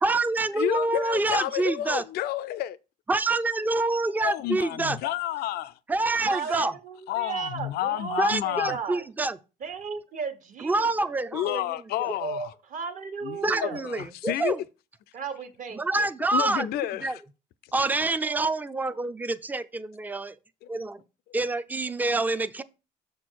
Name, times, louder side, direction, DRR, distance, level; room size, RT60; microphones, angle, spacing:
voice 1, 0.0-2.0 3.1-5.0 5.9-6.7 8.2-9.4 10.6-11.6 12.0-12.1 13.4-14.6 15.7-16.7 17.0-17.2 17.7-20.4 20.7-21.0 21.3-22.6, right 2 dB, 10° right, 0.4 m, -26 dB
voice 2, 0.5-2.8 4.2-5.8 7.1-8.8 11.3-12.5 13.2-14.6 16.3-17.2 20.6-20.7, left 13 dB, 70° left, 0.4 m, -30 dB
voice 3, 6.2-9.0 9.6-11.1 12.2-13.8 15.1-16.1, right 6 dB, 50° right, 1.2 m, -35 dB
7.0 x 4.4 x 4.5 m
cardioid pair, 110°, 17 cm